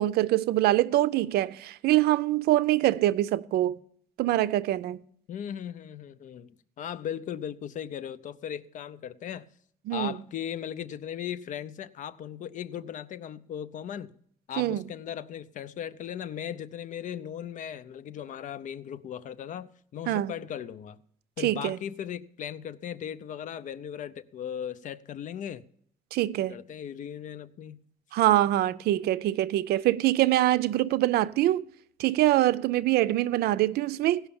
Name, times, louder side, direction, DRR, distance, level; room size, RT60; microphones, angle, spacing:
voice 1, 0.0-3.8 4.2-5.0 9.9-10.1 14.6-14.8 20.1-20.3 21.4-21.8 26.1-26.6 28.1-31.6 32.0-34.2, right 15 dB, 90° right, 0.5 m, -24 dB
voice 2, 5.3-9.4 9.9-14.1 14.5-21.0 21.4-25.6 26.5-27.8, left 9 dB, 55° left, 0.6 m, -37 dB
17.0 x 5.7 x 7.0 m
cardioid pair, 145°, 16 cm